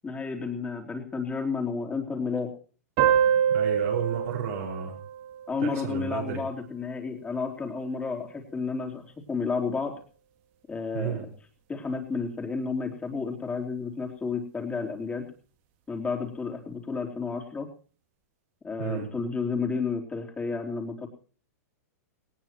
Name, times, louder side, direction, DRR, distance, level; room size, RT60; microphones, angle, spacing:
voice 1, 0.0-2.5 5.5-9.9 10.7-11.3 11.7-15.2 15.9-17.7 18.6-21.1, left 4 dB, 15° left, 2 dB, 3.7 m, -31 dB
sound 1, 3.0-6.1, right 9 dB, 50° right, 2.7 m, -26 dB
voice 2, 3.5-5.0 5.6-6.4 10.9-11.3 18.8-19.1, right 7 dB, 65° right, -2 dB, 5.3 m, -32 dB
19.0 x 18.5 x 3.1 m, 0.41 s
hypercardioid pair, 125°, 9 cm